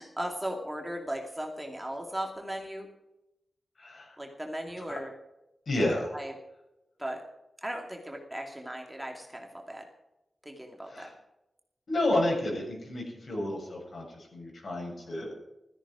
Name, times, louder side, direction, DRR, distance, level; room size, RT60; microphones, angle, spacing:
voice 1, 0.0-2.9 4.2-5.1 6.1-6.3 7.0-7.2 7.6-9.8 10.4-11.1, right 1 dB, 5° right, 1 dB, 2.4 m, -37 dB
voice 2, 3.8-4.1 4.9-5.0 5.7-6.1 10.9-11.1 11.9-14.0 14.3-15.3, left 1 dB, 55° left, 0 dB, 7.3 m, -30 dB
16.0 x 14.0 x 4.9 m, 0.91 s
wide cardioid pair, 100°, 0 cm